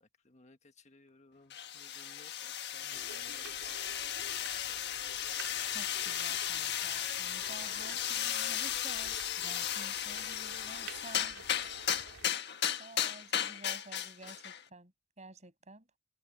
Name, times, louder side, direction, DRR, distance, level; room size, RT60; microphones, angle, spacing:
voice 1, 0.0-3.5 4.3-4.8 5.1-5.4, left 3 dB, 35° left, 1.6 m, -61 dB
sound 1, 1.5-14.6, left 10 dB, 55° left, 1.5 m, -35 dB
sound 2, 2.9-12.3, right 5 dB, 80° right, 2.7 m, -52 dB
voice 2, 5.6-11.4 12.0-12.2 12.8-14.9 15.2-15.9, right 2 dB, 35° right, 7.0 m, -52 dB
head